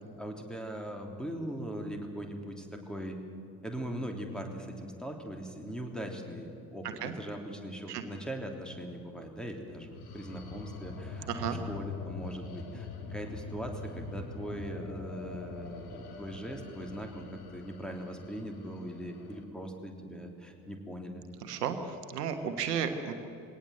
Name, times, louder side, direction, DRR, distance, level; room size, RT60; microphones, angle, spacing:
voice 1, 0.2-3.2 3.6-21.2, right 1 dB, ahead, 3 dB, 3.2 m, -40 dB
sound 1, 9.7-19.4, left 4 dB, 55° left, 2.4 m, -43 dB
voice 2, 11.3-11.6 21.4-21.8 22.1-23.1, right 8 dB, 75° right, 8 dB, 1.4 m, -33 dB
21.5 x 18.0 x 7.8 m, 2.8 s
figure-of-eight pair, 55°, 47 cm